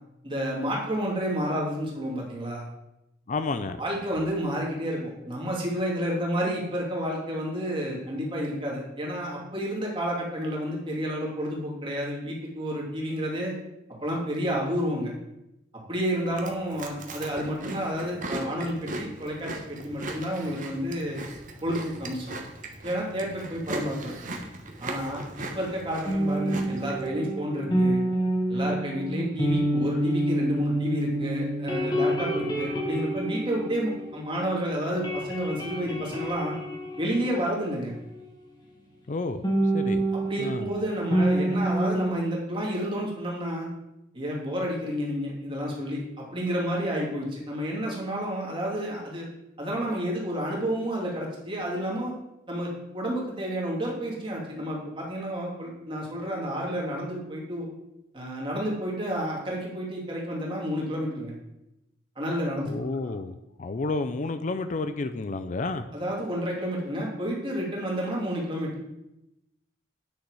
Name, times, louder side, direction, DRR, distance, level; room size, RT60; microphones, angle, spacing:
voice 1, 0.2-2.6 3.8-13.5 14.0-15.1 15.9-21.3 21.6-22.3 22.8-24.1 24.8-28.0 28.5-36.5 37.0-37.9 40.3-43.7 44.1-49.3 49.6-52.1 52.5-57.7 58.1-61.3 62.2-63.0 65.9-68.7, equal, 30° right, -3 dB, 2.6 m, -30 dB
voice 2, 3.3-3.8 39.1-39.4 39.7-40.0 40.4-40.7 62.7-65.8, left 3 dB, 45° left, 10 dB, 0.5 m, -30 dB
Chewing mastication, 16.3-27.1, right 2 dB, 45° right, 1.2 m, -38 dB
sound 1, 26.1-34.5 34.8-38.3 39.4-42.1, right 1 dB, 25° left, 1.8 m, -28 dB
9.6 x 6.5 x 4.8 m, 0.89 s
head